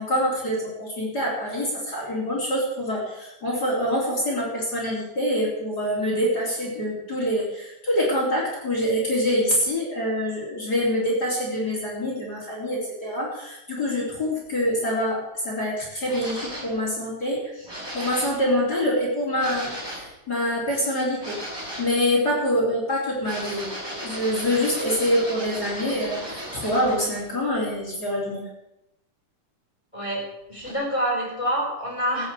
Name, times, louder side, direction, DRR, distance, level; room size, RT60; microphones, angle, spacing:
voice 1, 0.0-23.7 24.0-28.5, equal, 30° left, -4 dB, 4.1 m, -25 dB
sound 1, 16.0-16.8 17.6-18.4 19.4-20.1 21.2-21.9 23.2-27.2 30.6-30.7, equal, 5° right, 5.3 m, -35 dB
voice 2, 29.9-32.3, equal, 10° left, -3 dB, 4.2 m, -27 dB
14.5 x 9.5 x 7.7 m, 0.90 s
omnidirectional pair, 3.7 m